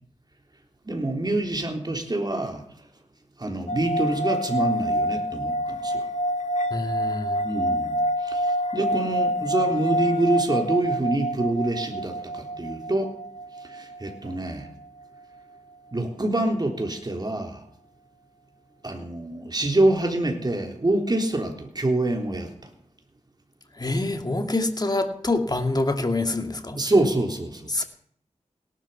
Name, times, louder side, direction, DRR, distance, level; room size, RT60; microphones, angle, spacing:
voice 1, 0.9-2.6 3.4-6.1 7.4-8.0 8.2-13.1 13.6-14.7 15.9-17.6 18.8-22.5 26.8-27.8, right 2 dB, 35° right, 3 dB, 3.7 m, -26 dB
sound 1, 3.7-15.0, equal, 85° left, 1.6 m, -27 dB
voice 2, 6.7-7.4 23.8-26.8 27.7-27.8, left 2 dB, 35° left, 6 dB, 2.3 m, -26 dB
18.0 x 12.0 x 5.7 m, 0.65 s
wide cardioid pair, 65°, 12 cm